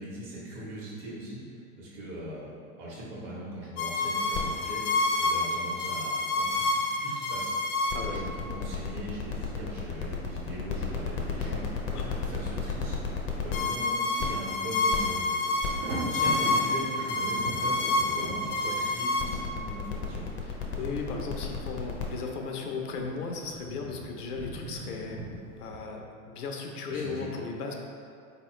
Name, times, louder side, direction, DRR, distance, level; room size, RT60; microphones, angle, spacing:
voice 1, 0.0-2.5 2.8-13.0 13.4-15.4 15.8-20.2 26.9-27.3, right 1 dB, 35° right, -6 dB, 1.2 m, -40 dB
sound 1, 3.8-22.0, left 3 dB, 30° left, 0.5 m, -29 dB
voice 2, 7.9-8.3 11.9-12.1 18.6-18.8 20.4-25.3 25.6-27.7, left 4 dB, 90° left, 2 dB, 0.7 m, -36 dB
Thunder, 14.3-14.7 15.0-25.8, right 2 dB, 20° right, 0.3 m, -41 dB
4.0 x 2.9 x 3.0 m, 2.5 s
hypercardioid pair, 115°, 44 cm